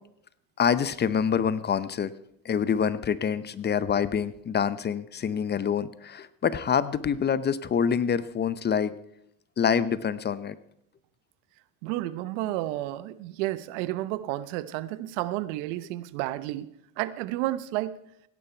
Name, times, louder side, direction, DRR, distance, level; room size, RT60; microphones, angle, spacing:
voice 1, 0.6-2.1 2.4-9.0 9.6-10.6, left 7 dB, 25° left, 16 dB, 0.8 m, -26 dB
voice 2, 11.8-18.0, right 15 dB, 75° right, 15 dB, 1.0 m, -31 dB
17.0 x 10.5 x 4.5 m, 0.74 s
supercardioid pair, 105°, 37 cm